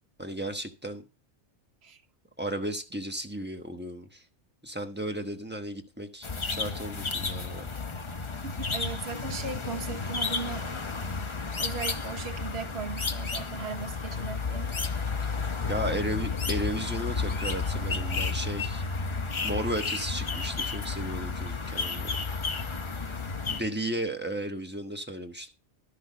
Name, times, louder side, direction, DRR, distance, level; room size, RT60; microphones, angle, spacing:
voice 1, 0.2-1.0 2.4-4.2 4.6-7.7 15.7-18.8 19.4-22.2 23.5-25.5, right 1 dB, 10° right, 1.1 m, -34 dB
sound 1, 6.2-23.6, left 4 dB, 30° left, 0.7 m, -32 dB
voice 2, 8.4-10.7 11.6-14.8, right 6 dB, 60° right, 1.3 m, -38 dB
12.5 x 6.3 x 5.1 m
omnidirectional pair, 1.2 m